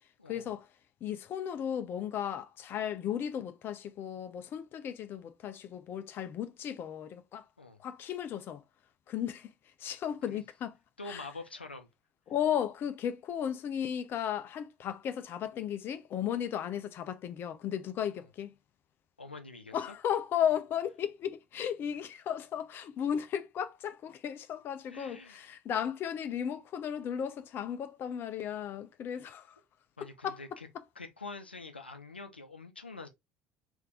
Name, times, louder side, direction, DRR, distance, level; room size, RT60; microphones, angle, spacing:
voice 1, 0.3-0.7 1.0-7.5 7.8-8.6 9.1-9.5 9.8-10.7 11.1-11.3 12.3-18.5 19.7-29.6 30.2-30.4, left 9 dB, 40° left, 0.5 m, -35 dB
voice 2, 11.0-11.9 18.1-18.3 19.2-19.9 24.9-25.4 30.0-30.7 31.0-33.1, left 3 dB, 85° left, 0.6 m, -45 dB
3.5 x 3.3 x 3.4 m
figure-of-eight pair, 60°, 5 cm